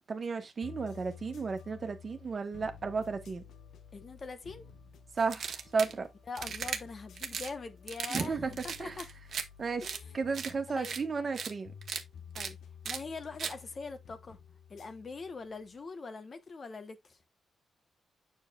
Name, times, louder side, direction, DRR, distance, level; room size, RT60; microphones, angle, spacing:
voice 1, 0.1-3.4 5.2-6.1 8.1-8.5 8.8-8.9 9.6-11.7, right 4 dB, 40° right, 1.3 m, -33 dB
sound 1, 0.6-15.9, left 7 dB, 85° left, 1.0 m, -52 dB
voice 2, 3.9-4.7 6.3-8.4 8.6-9.1 9.8-10.2 10.8-11.0 12.3-12.6 12.9-14.4 14.7-17.2, left 4 dB, 40° left, 1.1 m, -43 dB
sound 2, 5.3-5.9 6.4-6.8 7.2-7.5 7.9-8.3 8.5-9.4 9.8-10.0 10.3-10.5 10.8-11.0 11.3-11.5 11.8-12.0 12.4-12.5 12.9-13.0 13.4-13.5, right 6 dB, 65° right, 1.1 m, -37 dB
7.1 x 6.6 x 2.4 m
cardioid pair, 115°, 0 cm